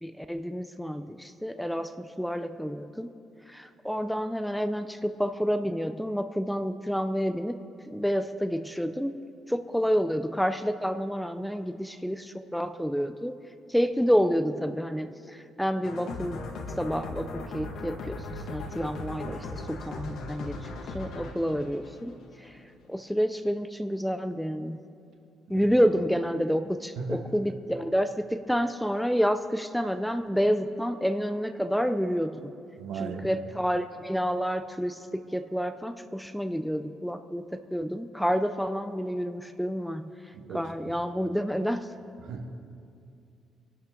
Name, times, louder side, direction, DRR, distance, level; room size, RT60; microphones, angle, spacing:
voice 1, 0.0-3.1 3.5-7.6 7.9-9.1 9.5-13.4 13.7-16.4 16.8-20.6 20.9-22.6 22.9-24.8 25.5-32.5 33.0-41.9, equal, ahead, 10 dB, 0.5 m, -29 dB
sound 1, 15.8-22.6, left 3 dB, 70° left, 1.7 m, -38 dB
voice 2, 27.0-27.3 32.8-33.3 40.3-40.7 42.2-42.5, right 4 dB, 75° right, 4 dB, 1.6 m, -36 dB
26.0 x 11.5 x 3.8 m, 2.5 s
cardioid pair, 155°, 0 cm